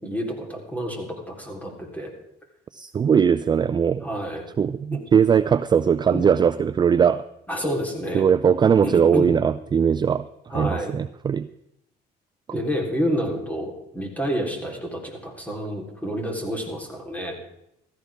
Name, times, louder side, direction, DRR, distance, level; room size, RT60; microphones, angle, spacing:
voice 1, 0.0-2.1 4.0-4.5 4.9-5.0 6.1-6.2 7.5-8.3 8.8-9.4 10.5-10.9 12.5-17.4, equal, 10° left, 0 dB, 3.7 m, -29 dB
voice 2, 2.7-4.1 4.6-7.2 8.1-10.2 10.5-11.5, right 7 dB, 25° right, 13 dB, 0.4 m, -20 dB
15.5 x 14.5 x 3.6 m, 0.81 s
cardioid pair, 110°, 17 cm